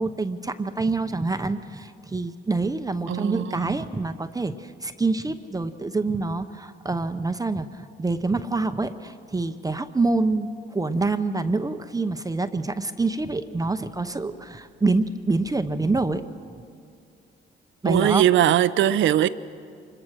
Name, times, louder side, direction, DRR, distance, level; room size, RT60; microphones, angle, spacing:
voice 1, 0.0-16.2 17.8-18.2, right 3 dB, 20° right, 0.8 m, -26 dB
voice 2, 3.1-3.8 17.8-19.3, right 11 dB, 75° right, 0.7 m, -20 dB
25.5 x 21.5 x 6.5 m
cardioid pair, 90°, 20 cm